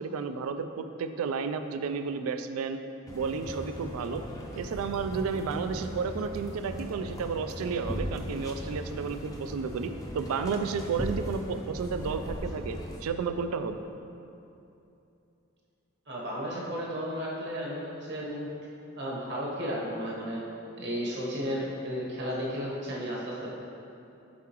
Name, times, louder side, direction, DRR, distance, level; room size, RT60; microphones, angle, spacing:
voice 1, 0.0-2.8 3.1-4.2 4.6-13.8, right 5 dB, 85° right, 9 dB, 0.3 m, -32 dB
sound 1, 3.1-13.0, equal, 15° left, 0.5 m, -38 dB
voice 2, 16.1-18.5 18.9-20.4 20.8-23.5, equal, 50° right, -5 dB, 1.1 m, -33 dB
7.2 x 4.8 x 3.0 m, 2.8 s
head